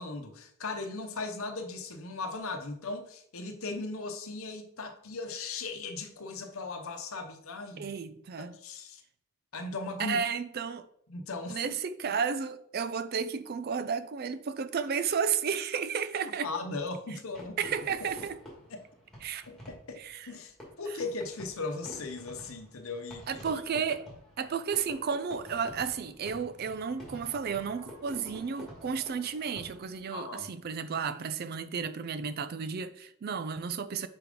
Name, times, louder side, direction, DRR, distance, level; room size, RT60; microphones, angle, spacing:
voice 1, 0.0-7.9 8.4-9.0 9.5-10.2 11.1-11.7 16.2-17.7 18.7-18.8 19.5-23.4 30.1-30.5, left 3 dB, 70° left, 0.9 m, -38 dB
voice 2, 7.8-8.6 10.0-10.9 11.5-16.5 17.6-18.4 19.2-19.4 20.0-20.3 23.3-24.1 24.4-34.1, right 6 dB, 45° right, 0.4 m, -33 dB
Fireworks, 17.3-30.1, equal, ahead, 2.0 m, -49 dB
5.0 x 4.6 x 5.1 m
head